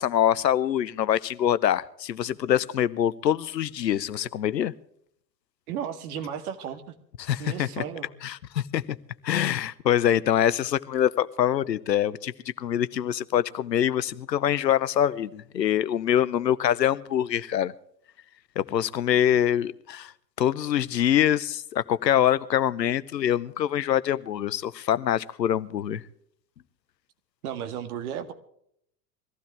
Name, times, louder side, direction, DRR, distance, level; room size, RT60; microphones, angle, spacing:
voice 1, 0.0-4.7 7.2-7.8 8.2-9.0 9.2-17.7 18.6-20.1 20.4-26.0, left 10 dB, 75° left, 0.8 m, -24 dB
voice 2, 5.7-6.8 7.4-8.1 27.4-28.3, right 9 dB, 60° right, 1.9 m, -34 dB
23.0 x 15.5 x 3.4 m
figure-of-eight pair, 80°, 50 cm